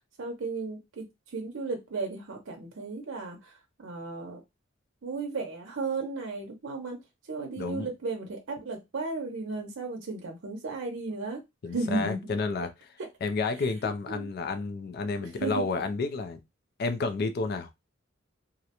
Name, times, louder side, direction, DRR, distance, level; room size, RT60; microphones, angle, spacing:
voice 1, 0.2-4.4 5.0-7.0 7.3-11.4 11.7-12.2 14.1-14.3 15.2-15.5, right 3 dB, 75° right, 0.6 m, -35 dB
voice 2, 7.6-7.9 11.6-12.7 13.2-16.4 16.8-17.9, left 3 dB, 50° left, 0.4 m, -30 dB
2.4 x 2.1 x 2.8 m
head